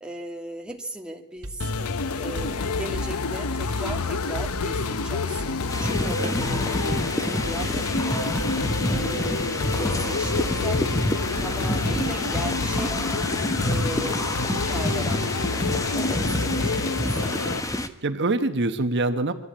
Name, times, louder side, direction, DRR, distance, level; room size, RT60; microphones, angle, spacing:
voice 1, 0.0-1.7 2.1-8.4 8.9-10.8 11.4-13.1 13.6-15.7 15.9-17.4, right 1 dB, 5° right, 1 dB, 1.8 m, -37 dB
sound 1, 1.4-3.4 3.7-9.4 9.7-13.1, right 1 dB, 75° right, 2.0 m, -41 dB
sound 2, 1.6-17.6, left 4 dB, 75° left, 0.8 m, -28 dB
sound 3, 5.7-17.9, left 1 dB, 15° left, 1.1 m, -28 dB
voice 2, 6.2-6.5 17.8-19.3, right 2 dB, 55° right, 8 dB, 1.1 m, -25 dB
23.0 x 13.5 x 8.6 m, 1.0 s
head